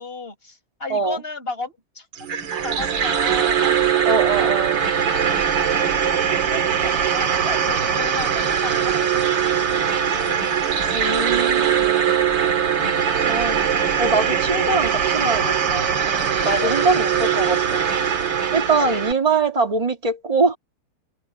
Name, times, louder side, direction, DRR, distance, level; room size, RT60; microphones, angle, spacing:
voice 1, 0.0-3.7 4.2-4.6 5.0-5.4 5.7-5.8 6.0-6.1 6.5-10.5 12.8-13.0 16.4-16.9 18.7-19.0, left 3 dB, 25° left, 7.2 m, -34 dB
sound 1, 2.1-19.1, right 8 dB, 65° right, 2.4 m, -21 dB
voice 2, 4.1-4.8 10.9-12.2 13.3-13.7 14.0-17.8 18.5-20.6, right 3 dB, 20° right, 2.1 m, -23 dB
omnidirectional pair, 2.2 m